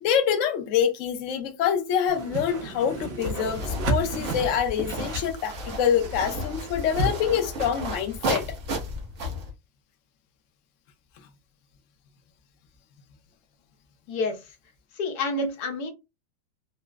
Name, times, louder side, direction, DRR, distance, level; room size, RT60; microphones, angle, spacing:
voice 1, 0.0-8.4, left 8 dB, 80° left, 0.7 m, -26 dB
Whoosh swoosh swish, 2.1-7.1, right 3 dB, 85° right, 1.7 m, -32 dB
sound 1, 3.2-9.5, equal, 55° right, 0.9 m, -33 dB
voice 2, 14.1-14.4 15.0-15.9, left 2 dB, 65° left, 1.1 m, -28 dB
4.1 x 2.0 x 2.3 m
omnidirectional pair, 2.0 m